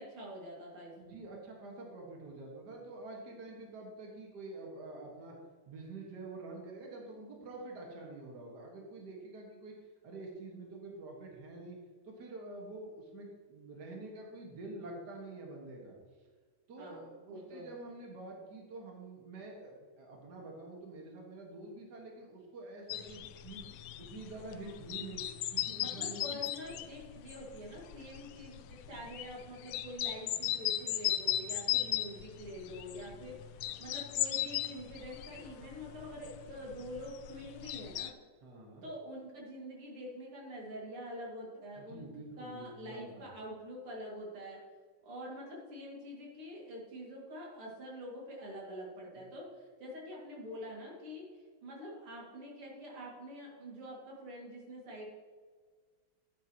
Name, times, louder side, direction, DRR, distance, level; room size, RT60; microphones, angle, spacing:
voice 1, 0.0-1.2 16.8-17.7 25.7-38.1 38.8-42.1 42.4-44.6 45.0-51.3 51.6-55.1, equal, 90° right, -3 dB, 3.3 m, -46 dB
voice 2, 1.0-5.4 5.7-9.7 10.0-11.8 12.1-15.9 16.7-23.7 24.0-25.2 25.5-26.4 38.4-38.8 41.8-43.2 49.1-49.3, right 2 dB, 50° right, -1 dB, 2.2 m, -47 dB
sound 1, 22.9-38.1, left 13 dB, 90° left, 1.5 m, -37 dB
12.0 x 9.3 x 3.0 m, 1.5 s
omnidirectional pair, 2.4 m